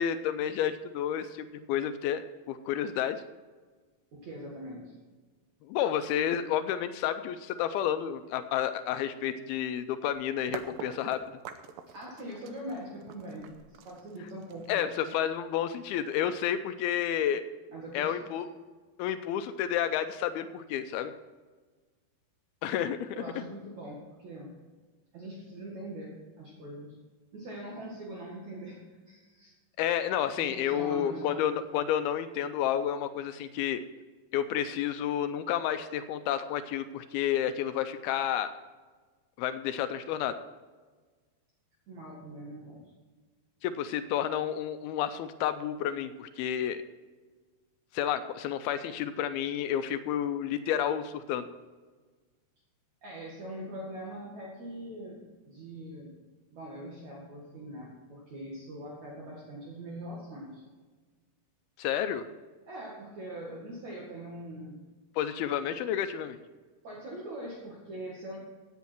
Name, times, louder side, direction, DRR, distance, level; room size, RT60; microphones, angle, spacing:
voice 1, 0.0-2.2 2.5-3.2 5.7-11.2 14.7-17.4 17.9-18.5 19.0-21.1 22.6-23.2 29.8-33.8 34.3-38.5 39.4-40.4 43.6-46.8 47.9-51.5 61.8-62.3 65.2-66.4, left 10 dB, 80° left, 10 dB, 2.4 m, -30 dB
voice 2, 4.1-4.9 11.9-14.9 17.7-18.1 23.1-24.5 25.1-26.9 27.3-28.8 29.1-29.5 30.3-31.5 41.9-42.8 53.0-56.2 56.5-60.6 62.7-64.8 66.8-68.4, right 1 dB, 50° right, -4 dB, 3.0 m, -42 dB
sound 1, 10.1-10.2 10.5-16.4, right 8 dB, 75° right, 2.3 m, -45 dB
16.5 x 8.3 x 4.5 m, 1.4 s
omnidirectional pair, 4.6 m